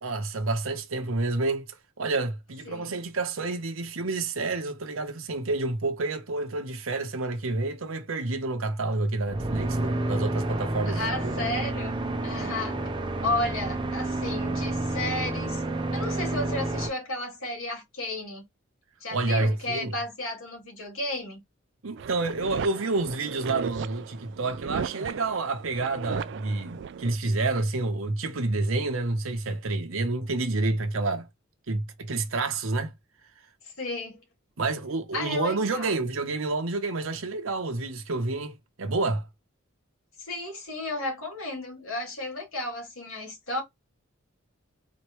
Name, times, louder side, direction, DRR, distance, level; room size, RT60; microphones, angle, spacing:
voice 1, 0.0-1.7 2.0-11.3 19.1-20.0 21.8-31.3 31.7-32.9 34.6-39.2, right 3 dB, 80° right, 0.8 m, -29 dB
sound 1, 9.3-16.9, right 2 dB, 25° right, 0.7 m, -30 dB
voice 2, 10.9-12.9 13.2-15.6 15.9-18.4 19.0-21.4 33.6-34.2 35.1-36.0 40.2-43.6, left 2 dB, 85° left, 2.7 m, -33 dB
sound 2, 22.0-27.2, right 7 dB, 55° right, 0.3 m, -37 dB
4.2 x 3.1 x 3.0 m
head